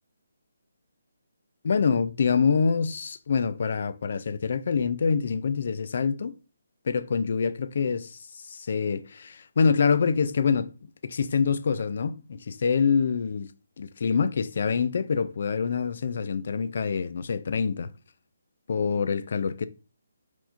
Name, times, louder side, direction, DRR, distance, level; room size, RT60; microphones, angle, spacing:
voice 1, 1.6-6.3 6.9-13.5 13.8-17.9 18.7-19.7, left 5 dB, 45° left, 0.4 m, -26 dB
4.5 x 4.3 x 2.6 m
hypercardioid pair, 175°, 0 cm